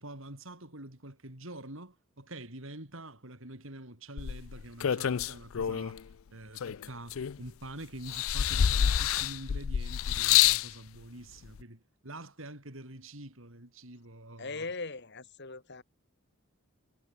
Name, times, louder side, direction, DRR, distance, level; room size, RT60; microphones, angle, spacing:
voice 1, 0.0-14.7, right 1 dB, 65° right, 4.8 m, -46 dB
sound 1, 4.2-6.0 6.6-7.6 8.1-10.7 11.6-11.7, left 10 dB, 70° left, 0.4 m, -27 dB
voice 2, 14.4-15.8, left 3 dB, 50° left, 1.7 m, -39 dB
head